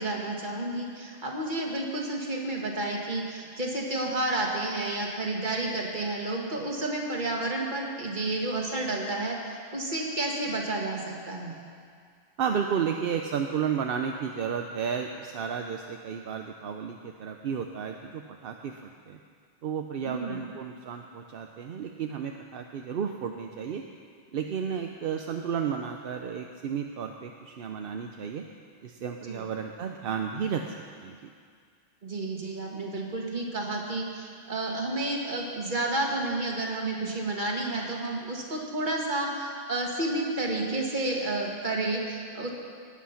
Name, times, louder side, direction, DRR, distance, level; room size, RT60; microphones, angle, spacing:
voice 1, 0.0-11.6 20.1-20.4 29.3-29.4 32.0-42.5, right 2 dB, 40° right, -1 dB, 1.9 m, -31 dB
voice 2, 12.4-19.2 19.6-23.8 24.3-28.4 28.8-30.7 31.0-31.2, right 7 dB, 55° right, 4 dB, 0.8 m, -32 dB
19.0 x 8.4 x 5.7 m, 2.2 s
omnidirectional pair, 1.3 m